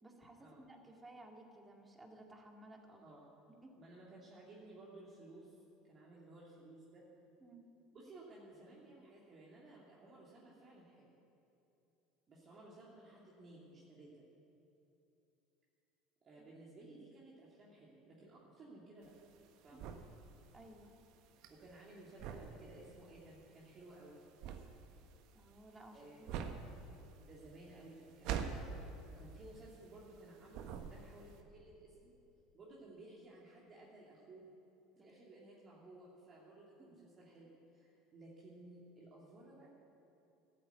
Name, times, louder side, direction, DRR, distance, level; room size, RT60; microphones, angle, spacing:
voice 1, 0.0-3.0 3.6-3.8 7.4-7.7 19.7-19.8 20.5-21.0 25.3-26.5 35.0-35.1 36.8-37.0, right 1 dB, 20° right, 2 dB, 2.1 m, -57 dB
voice 2, 3.0-3.3 3.8-5.6 5.9-7.0 7.9-11.1 12.3-14.2 16.2-19.1 19.6-19.9 21.5-24.2 25.9-26.3 27.2-28.7 29.1-32.2 32.5-34.4 35.0-37.5 37.7-39.7, right 2 dB, 40° right, -5 dB, 2.6 m, -57 dB
sound 1, 19.0-30.2 30.5-31.4, right 7 dB, 65° right, 1.0 m, -45 dB
12.5 x 8.8 x 8.1 m, 2.8 s
hypercardioid pair, 85°, 0 cm